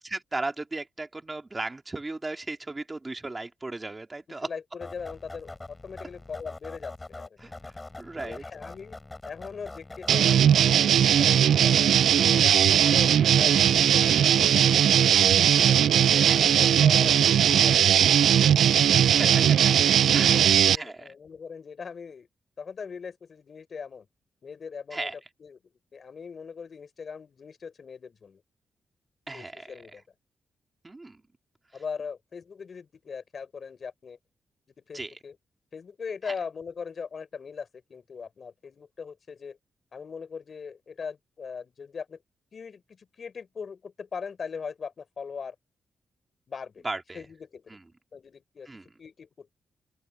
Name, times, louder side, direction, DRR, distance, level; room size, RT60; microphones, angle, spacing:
voice 1, 0.0-4.5 7.4-8.4 12.7-13.0 16.2-16.5 18.9-19.6 20.1-21.1 24.9-25.2 29.3-29.8 30.8-31.2 31.7-31.8 34.9-35.2 36.2-36.3 46.8-47.2 47.7-47.8 48.7-48.9, right 2 dB, 20° right, 2.4 m, -36 dB
voice 2, 4.3-7.3 8.2-9.0 9.2-12.0 12.3-15.3 15.6-18.2 19.1-19.3 20.1-22.3 22.6-24.1 24.4-25.1 25.4-25.6 25.9-28.4 29.3-30.0 31.7-34.2 34.8-35.4 35.7-39.6 39.9-42.2 42.5-45.5 46.5-46.8 47.1-47.8 48.1-48.7 49.0-49.5, left 5 dB, 45° left, 4.5 m, -40 dB
sound 1, 4.8-10.7, left 2 dB, 20° left, 8.0 m, -43 dB
sound 2, 10.1-20.8, right 9 dB, 90° right, 0.3 m, -19 dB
open air
wide cardioid pair, 130°, 0 cm